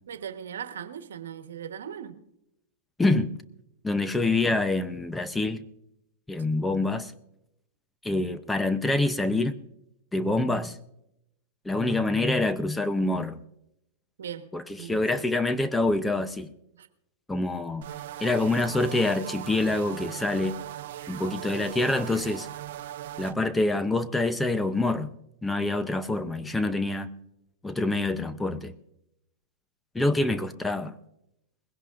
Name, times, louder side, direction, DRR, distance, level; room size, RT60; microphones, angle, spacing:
voice 1, 0.1-2.2 14.2-14.5 14.8-15.3 16.7-16.9, right 9 dB, 85° right, 1.2 m, -39 dB
voice 2, 3.0-3.3 3.8-5.6 6.3-7.1 8.0-9.5 10.1-10.8 11.6-13.4 14.5-16.5 17.3-17.9 18.2-20.6 21.1-22.5 23.2-25.1 25.4-27.1 27.6-28.7 29.9-30.9, left 2 dB, 5° left, 0.7 m, -26 dB
sound 1, 17.8-23.3, right 12 dB, 65° right, 0.8 m, -39 dB
20.5 x 16.5 x 2.5 m
hypercardioid pair, 130°, 0 cm